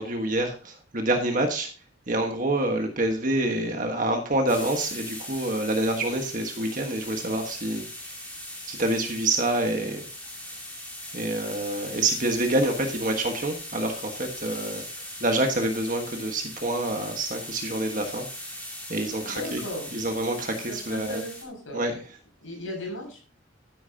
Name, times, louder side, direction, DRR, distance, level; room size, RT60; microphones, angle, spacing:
voice 1, 0.0-1.7 2.1-8.1 8.7-10.0 11.1-18.3 18.5-18.6 18.9-19.6 19.9-21.2 21.7-21.9, right 1 dB, 40° right, 4 dB, 1.4 m, -27 dB
sound 1, 4.5-21.4, left 1 dB, 10° left, 2.8 m, -40 dB
voice 2, 19.2-19.9 20.7-21.8 22.4-23.2, left 1 dB, 85° left, 1 dB, 6.4 m, -36 dB
12.5 x 10.5 x 2.8 m, 0.37 s
head